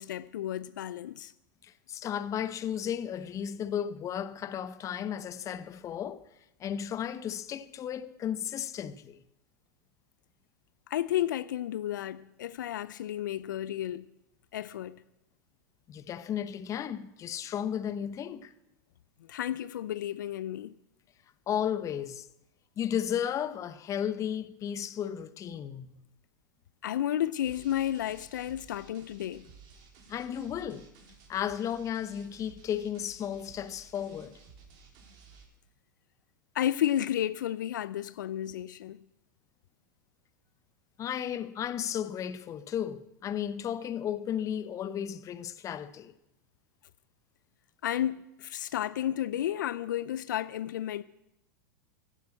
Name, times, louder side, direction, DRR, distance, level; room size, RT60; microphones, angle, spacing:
voice 1, 0.0-1.3 10.9-14.1 14.5-15.0 19.3-20.8 26.8-29.4 36.5-39.0 47.8-51.0, left 12 dB, 75° left, 0.5 m, -32 dB
voice 2, 1.6-6.2 6.6-9.2 15.9-18.5 21.5-22.3 22.8-26.0 30.1-30.9 31.3-34.4 41.0-46.1, left 9 dB, 30° left, 0.9 m, -34 dB
sound 1, 27.4-35.4, right 5 dB, 50° right, 3.6 m, -55 dB
15.5 x 8.2 x 7.7 m
hypercardioid pair, 100°, 10 cm